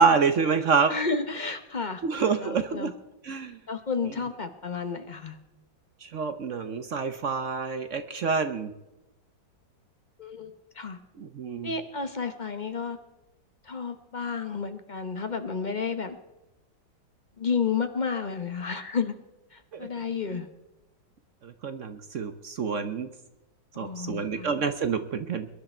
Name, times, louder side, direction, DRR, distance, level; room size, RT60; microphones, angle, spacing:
voice 1, 0.0-0.9 2.0-2.9 3.2-3.6 4.0-4.1 6.0-8.7 11.2-11.7 19.7-19.9 20.3-20.4 21.4-23.1 23.8-25.5, right 5 dB, 55° right, 9 dB, 0.9 m, -27 dB
voice 2, 0.9-2.0 2.3-2.9 3.7-5.4 10.2-11.0 11.6-13.0 13.6-16.2 17.4-19.1 19.5-20.5 23.7-24.5, left 5 dB, 40° left, 8 dB, 0.7 m, -31 dB
22.0 x 10.5 x 4.4 m, 1.0 s
omnidirectional pair, 2.1 m